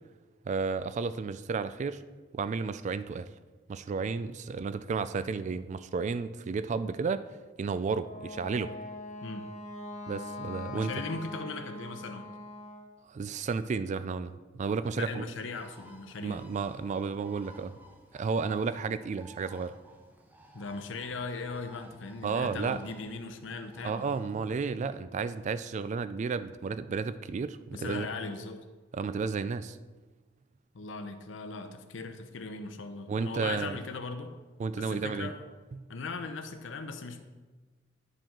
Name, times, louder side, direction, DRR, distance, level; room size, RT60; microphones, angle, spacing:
voice 1, 0.5-2.0 2.3-3.3 3.7-7.2 7.6-8.7 10.1-10.9 13.1-15.3 16.2-17.8 18.1-19.7 22.2-22.8 23.8-28.1 28.9-29.8 33.1-33.8 34.6-35.3, right 5 dB, 40° right, 13 dB, 0.3 m, -32 dB
Wind instrument woodwind instrument, 8.0-12.9, left 2 dB, 40° left, 0.7 m, -42 dB
voice 2, 10.7-12.3 15.0-16.4 20.5-24.1 27.7-28.6 30.7-34.4 34.7-35.4 35.9-37.2, left 3 dB, 75° left, 7 dB, 0.6 m, -39 dB
Bird, 15.4-24.7, equal, 10° right, 0.7 m, -56 dB
10.5 x 5.0 x 3.7 m, 1.3 s
head